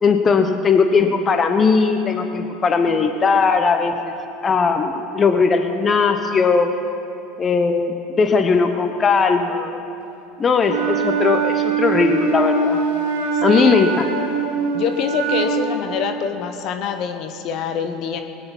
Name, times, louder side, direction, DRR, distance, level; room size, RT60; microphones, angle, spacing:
voice 1, 0.0-4.1 4.4-6.7 7.4-9.8 10.4-12.8 13.4-14.1, left 5 dB, 30° left, 7 dB, 1.0 m, -18 dB
Wind instrument woodwind instrument, 10.6-15.8, right 5 dB, 85° right, 1.9 m, -22 dB
voice 2, 13.5-13.8 14.7-18.2, left 7 dB, 55° left, 7 dB, 1.1 m, -25 dB
20.0 x 9.8 x 5.5 m, 2.8 s
hypercardioid pair, 85°, 0 cm